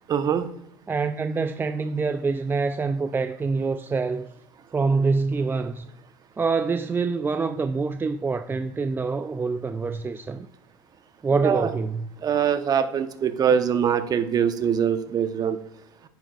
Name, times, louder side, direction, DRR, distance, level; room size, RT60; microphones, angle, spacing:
voice 1, 0.1-0.5 11.3-11.7 12.2-15.6, right 8 dB, 35° right, 1.0 m, -23 dB
voice 2, 0.9-4.3 4.7-5.9 6.4-10.5 11.2-12.1, right 4 dB, 20° right, 0.5 m, -25 dB
10.5 x 8.5 x 2.4 m
hypercardioid pair, 75°, 11 cm